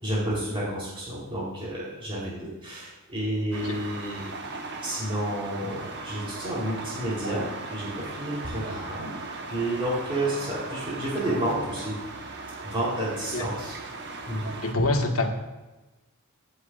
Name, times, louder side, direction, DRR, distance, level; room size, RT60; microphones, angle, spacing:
voice 1, 0.0-4.2 4.8-9.1 9.5-11.9 12.6-13.8 14.3-14.8, right 1 dB, 25° right, -7 dB, 3.4 m, -30 dB
sound 1, 3.5-14.7, right 3 dB, 50° right, 1.1 m, -38 dB
voice 2, 14.6-15.3, left 2 dB, 70° left, 2 dB, 1.5 m, -25 dB
15.5 x 8.0 x 2.5 m, 1.1 s
head